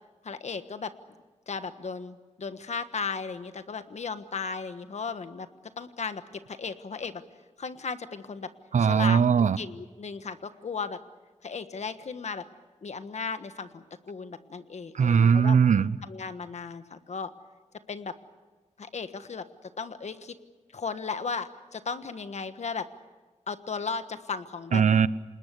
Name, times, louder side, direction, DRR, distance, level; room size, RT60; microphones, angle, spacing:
voice 1, 0.2-0.9 1.5-5.5 5.8-7.2 7.6-8.5 8.8-11.0 11.4-12.4 12.8-15.6 16.0-17.3 17.9-18.1 18.8-20.3 20.7-22.9 23.5-24.8, left 5 dB, 65° left, 10 dB, 1.3 m, -35 dB
voice 2, 8.7-9.6 14.9-16.0 24.7-25.1, right 6 dB, 80° right, 17 dB, 0.7 m, -20 dB
28.0 x 20.5 x 8.3 m, 1.3 s
wide cardioid pair, 135°, 12 cm